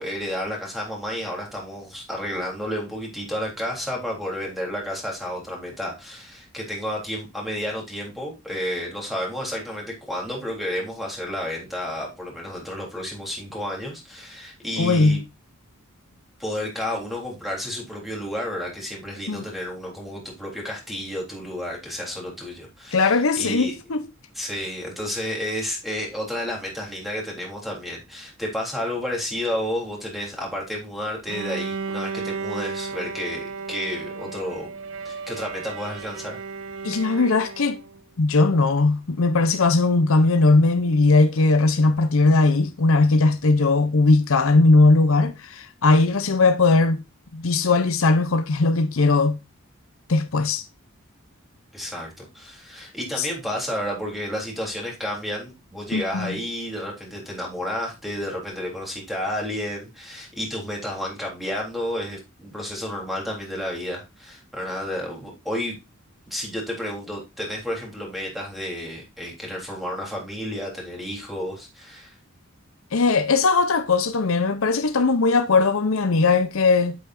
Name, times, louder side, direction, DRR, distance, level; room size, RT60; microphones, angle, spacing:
voice 1, 0.0-15.2 16.4-23.7 24.3-34.7 35.0-36.4 51.7-65.8 66.3-72.2, equal, ahead, 3.5 m, -31 dB
voice 2, 14.8-15.2 19.3-19.4 22.9-24.1 36.8-37.8 38.2-47.0 47.3-49.4 50.1-50.6 53.2-53.3 55.9-56.4 72.9-77.0, left 3 dB, 70° left, 0.7 m, -19 dB
Bowed string instrument, 31.3-38.0, right 4 dB, 70° right, 0.7 m, -34 dB
8.6 x 8.2 x 2.6 m
head